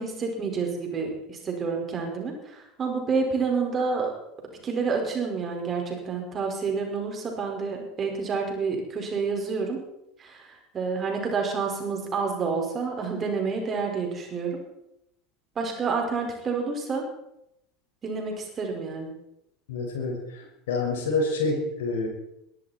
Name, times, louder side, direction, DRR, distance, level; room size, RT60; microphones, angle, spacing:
voice 1, 0.0-4.1 4.6-9.8 10.2-14.6 15.6-17.1 18.0-19.1, right 4 dB, 30° right, 1 dB, 5.4 m, -29 dB
voice 2, 19.7-22.1, left 3 dB, 70° left, 0 dB, 6.0 m, -28 dB
22.5 x 13.0 x 4.5 m, 0.83 s
figure-of-eight pair, 75°, 0 cm